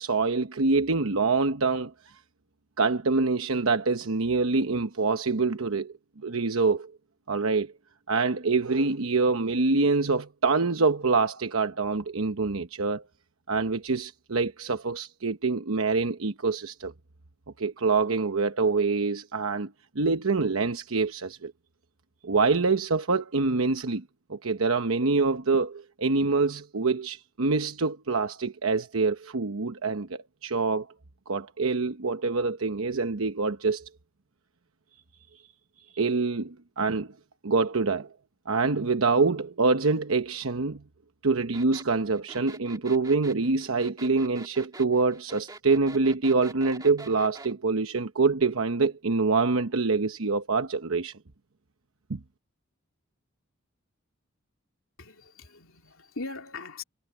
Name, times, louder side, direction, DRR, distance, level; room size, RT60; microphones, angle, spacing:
voice 1, 0.0-2.1 2.8-5.9 6.2-6.9 7.3-7.7 8.1-13.0 13.5-16.9 17.6-21.5 22.2-24.0 24.3-30.9 31.3-33.9 35.9-37.1 37.4-38.1 38.5-40.8 41.2-51.1 52.1-52.2, right 4 dB, 80° right, 1.0 m, -25 dB
sound 1, 41.5-47.5, right 2 dB, 20° right, 2.0 m, -45 dB
voice 2, 55.0-56.8, left 3 dB, 80° left, 2.9 m, -40 dB
head